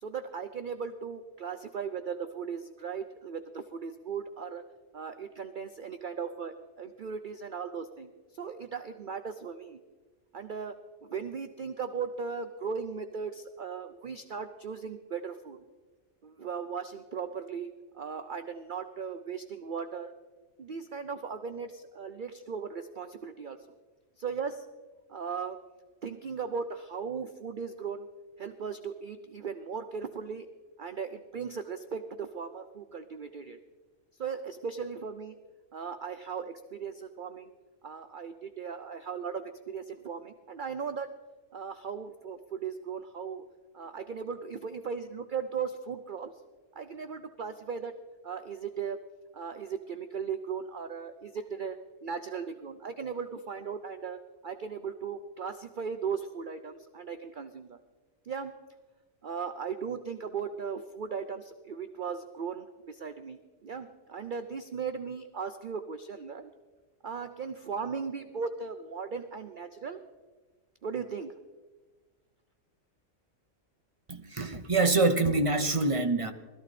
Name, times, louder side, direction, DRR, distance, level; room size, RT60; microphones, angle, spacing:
voice 1, 0.0-4.6 4.9-9.8 10.3-10.8 11.0-15.6 16.2-20.1 20.6-23.6 24.2-24.7 25.1-25.6 26.0-28.1 28.4-30.5 30.8-33.6 34.1-35.4 35.7-37.5 37.8-41.1 41.5-43.4 43.7-46.3 46.8-48.0 48.2-49.0 49.3-57.8 58.2-58.5 59.2-66.5 67.0-70.0 70.8-71.3, right 6 dB, 50° right, 0.7 m, -37 dB
voice 2, 74.1-76.3, right 3 dB, 25° right, 0.9 m, -25 dB
20.0 x 13.5 x 4.2 m
omnidirectional pair, 1.5 m